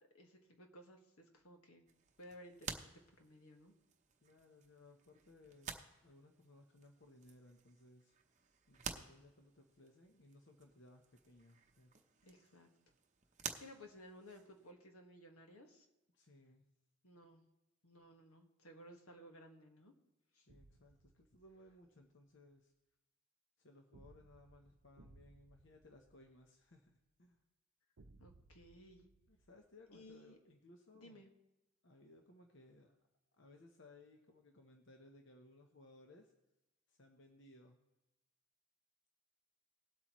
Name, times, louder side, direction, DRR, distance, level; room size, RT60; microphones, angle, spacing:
voice 1, 0.0-1.9 2.2-3.7 12.2-12.7 13.6-15.9 17.0-17.4 17.8-19.9 20.3-20.5 28.2-29.1 29.9-30.4 30.9-31.3, equal, 80° left, 3 dB, 1.7 m, -58 dB
sound 1, 1.9-14.7, right 6 dB, 35° right, 0.8 m, -52 dB
voice 2, 4.2-8.2 8.7-12.0 16.1-16.7 20.5-22.7 23.6-26.9 27.2-27.4 29.3-31.3 31.8-33.0 33.3-36.3 36.9-37.8, left 2 dB, 55° left, 3 dB, 0.9 m, -63 dB
sound 2, 20.5-21.9 23.9-26.9 28.0-30.1, right 2 dB, 70° right, 0.6 m, -65 dB
19.0 x 8.3 x 3.1 m, 0.95 s
head